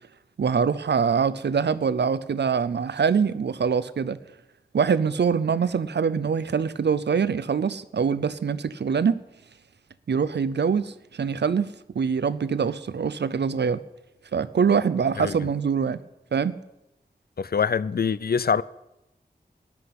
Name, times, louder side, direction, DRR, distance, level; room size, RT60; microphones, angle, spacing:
voice 1, 0.4-4.2 4.7-9.2 10.1-13.8 14.3-16.0 16.3-16.6, right 6 dB, 90° right, 0.6 m, -24 dB
voice 2, 17.4-18.6, left 6 dB, 65° left, 0.5 m, -24 dB
13.0 x 10.0 x 5.9 m
wide cardioid pair, 50°, 17 cm